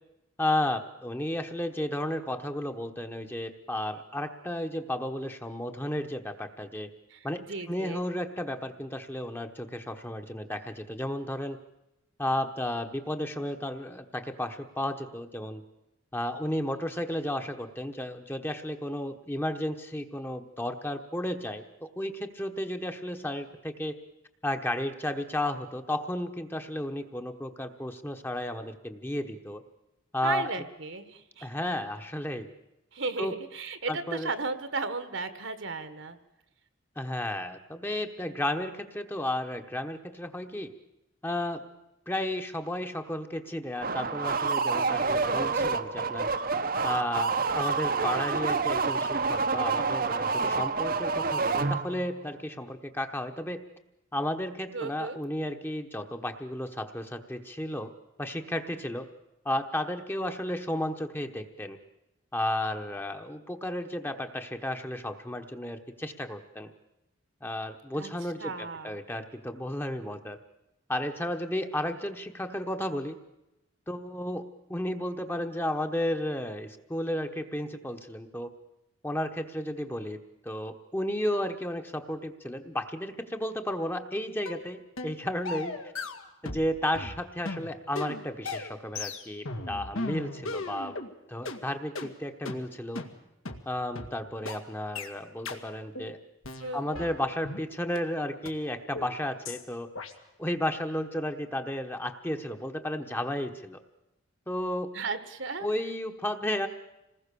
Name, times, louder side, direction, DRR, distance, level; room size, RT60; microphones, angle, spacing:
voice 1, 0.4-6.9 7.2-11.6 12.2-15.6 16.1-24.0 24.4-29.6 30.1-30.5 31.4-32.5 33.2-33.3 33.9-34.3 37.0-40.7 41.2-41.6 42.1-46.3 46.8-53.6 54.1-57.9 58.2-59.1 59.4-61.8 62.3-66.7 67.4-70.4 70.9-73.2 73.9-74.4 74.7-78.5 79.0-80.2 80.4-85.8 86.4-90.9 91.3-93.0 93.7-96.2 96.7-99.9 100.4-103.8 104.5-104.9 105.6-106.7, left 1 dB, 10° left, 6 dB, 1.1 m, -33 dB
voice 2, 7.1-8.0 30.2-31.5 32.9-36.2 54.7-55.2 67.9-68.1 68.4-68.9 96.6-97.0 104.9-105.7, right 3 dB, 65° right, 11 dB, 1.7 m, -35 dB
sound 1, 43.8-52.1, right 4 dB, 45° right, 0.9 m, -28 dB
sound 2, 84.5-84.6 85.0-85.2 85.5-86.7 86.9-91.1 91.5-91.6 92.0-92.1 92.5-92.6 93.0-93.1 93.5-93.6 94.0-94.1 94.5-94.6 95.0-95.1 95.5-95.6 96.0-96.1 96.4-97.6 98.0-98.1 98.5-98.6 99.0-99.1 99.5-99.6 100.0-100.1, left 3 dB, 85° left, 2.2 m, -36 dB
27.0 x 20.0 x 6.9 m, 0.93 s
head